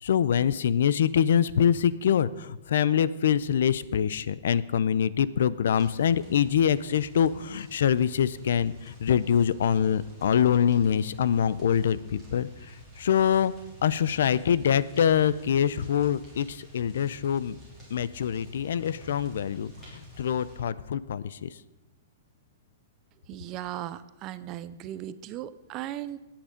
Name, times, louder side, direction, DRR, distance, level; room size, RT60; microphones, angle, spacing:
voice 1, 0.0-13.5 13.8-17.5 17.9-21.5, left 8 dB, 65° left, 18 dB, 0.5 m, -25 dB
sound 1, 5.6-20.6, left 1 dB, 5° left, 3.4 m, -49 dB
voice 2, 23.3-26.2, right 12 dB, 20° right, 14 dB, 0.4 m, -37 dB
15.5 x 8.8 x 5.1 m, 1.1 s
hypercardioid pair, 180°, 0 cm